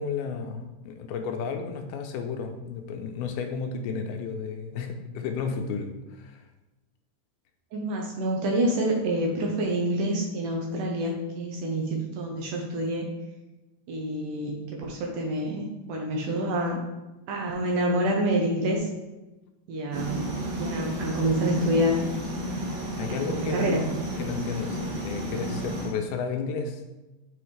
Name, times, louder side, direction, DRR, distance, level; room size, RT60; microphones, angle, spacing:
voice 1, 0.0-5.9 6.2-6.4 23.0-23.8 24.2-26.8, left 5 dB, 85° left, 5 dB, 2.5 m, -32 dB
voice 2, 7.7-13.1 13.9-16.8 17.3-18.9 19.7-20.3 20.6-22.0 23.1-23.8, right 1 dB, 75° right, 0 dB, 2.0 m, -27 dB
sound 1, 19.9-25.9, equal, 55° right, 2.4 m, -32 dB
6.9 x 5.5 x 3.2 m, 1.1 s
omnidirectional pair, 4.4 m